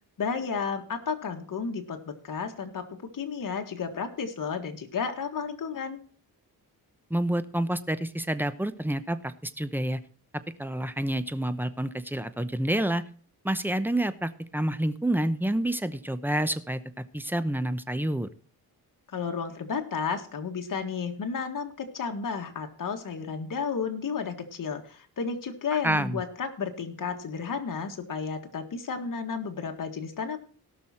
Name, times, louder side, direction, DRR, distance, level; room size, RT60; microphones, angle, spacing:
voice 1, 0.2-6.0 19.1-30.4, left 5 dB, 60° left, 5 dB, 1.9 m, -32 dB
voice 2, 7.1-10.0 10.6-13.0 13.4-16.8 17.1-18.3 25.7-26.2, right 1 dB, 5° right, 12 dB, 0.9 m, -28 dB
17.5 x 6.3 x 4.4 m, 0.44 s
cardioid pair, 90°, 37 cm